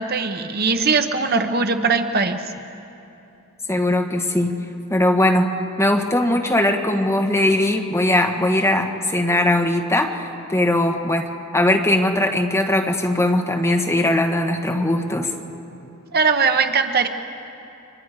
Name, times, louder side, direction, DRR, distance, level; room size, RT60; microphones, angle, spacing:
voice 1, 0.0-2.4 16.1-17.1, right 4 dB, 45° right, 7 dB, 1.0 m, -20 dB
voice 2, 3.7-4.6 4.9-5.5 5.8-15.3, left 1 dB, 15° left, 3 dB, 1.4 m, -20 dB
30.0 x 24.0 x 4.9 m, 2.8 s
head